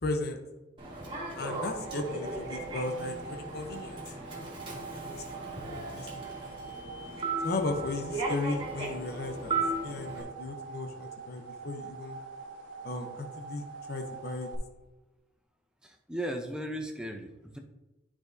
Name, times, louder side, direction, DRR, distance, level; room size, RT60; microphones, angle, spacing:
voice 1, 0.0-0.4 1.4-4.5 4.9-6.7 7.4-9.5 9.8-12.2 12.8-13.6 13.9-14.5, left 2 dB, 50° left, 4 dB, 0.8 m, -36 dB
Human voice / Subway metro underground, 0.8-10.2, right 3 dB, 25° right, 1.6 m, -36 dB
sound 1, 1.4-14.6, right 5 dB, 80° right, 1.0 m, -45 dB
voice 2, 15.8-17.6, right 1 dB, 5° right, 3 dB, 0.6 m, -36 dB
10.0 x 4.9 x 2.6 m, 1.1 s
head